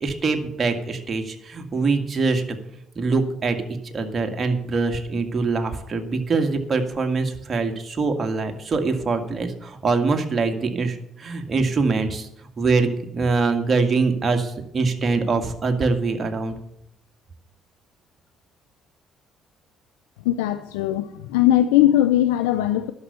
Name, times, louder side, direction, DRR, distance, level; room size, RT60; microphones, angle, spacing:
voice 1, 0.0-2.6 3.0-12.3 12.6-16.5, right 4 dB, 40° right, 4 dB, 1.9 m, -23 dB
voice 2, 20.2-22.9, left 13 dB, 85° left, 10 dB, 0.5 m, -19 dB
11.0 x 6.6 x 8.1 m, 0.77 s
hypercardioid pair, 55°, 0 cm